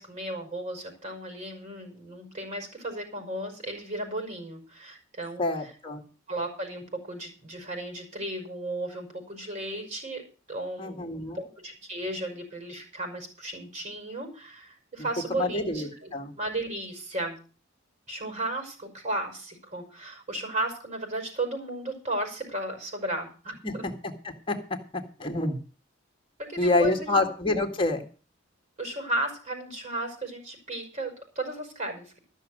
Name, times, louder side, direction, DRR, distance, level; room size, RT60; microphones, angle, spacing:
voice 1, 0.0-5.7 6.3-17.4 18.1-23.9 26.4-27.3 28.8-32.1, right 1 dB, 40° right, 3 dB, 5.5 m, -35 dB
voice 2, 5.4-6.0 10.8-11.4 15.4-16.3 23.6-23.7 24.2-25.6 26.6-28.0, left 2 dB, 25° left, 3 dB, 2.0 m, -27 dB
14.0 x 6.5 x 7.9 m, 0.38 s
head